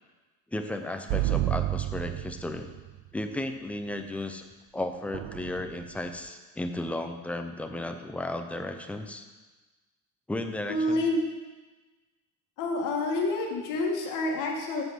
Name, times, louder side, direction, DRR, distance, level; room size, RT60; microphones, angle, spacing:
voice 1, 0.5-2.7 3.1-4.4 4.7-9.3 10.3-11.0, left 1 dB, 5° left, 6 dB, 0.4 m, -34 dB
sound 1, 1.1-2.9 5.1-6.1, right 17 dB, 60° right, 0.5 m, -30 dB
voice 2, 10.7-11.2 12.6-14.8, left 2 dB, 60° left, 0 dB, 2.0 m, -28 dB
8.1 x 7.5 x 6.0 m, 1.2 s
cardioid pair, 170°, 36 cm